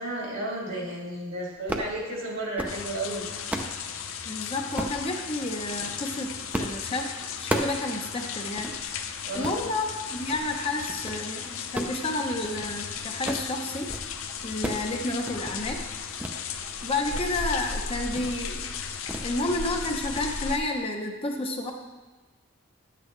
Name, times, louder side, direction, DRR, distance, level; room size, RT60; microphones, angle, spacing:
voice 1, 0.0-3.3 9.2-9.6, right 1 dB, 65° right, -3 dB, 2.4 m, -33 dB
sound 1, 1.6-1.9 2.4-2.8 3.2-3.8 4.8-5.0 5.6-6.0 6.5-6.8 7.1-7.8 8.2-8.3 8.6-8.7 9.3-9.6 10.1-10.4 10.8-11.2 11.6-12.8 13.1-13.5 13.8-14.1 14.3-14.9 15.2-15.6 16.2-16.4 16.8-17.3 17.6-17.7 18.1-18.4 19.1-19.3 19.6-19.8 20.1-20.3, right 1 dB, 10° right, 0.6 m, -34 dB
sound 2, 2.7-20.6, left 6 dB, 75° left, 0.6 m, -36 dB
voice 2, 4.3-7.1 7.4-8.7 9.3-14.0 14.4-15.8 16.8-18.7 19.2-21.7, left 2 dB, 30° left, 2 dB, 0.8 m, -30 dB
10.5 x 8.4 x 3.2 m, 1.2 s
head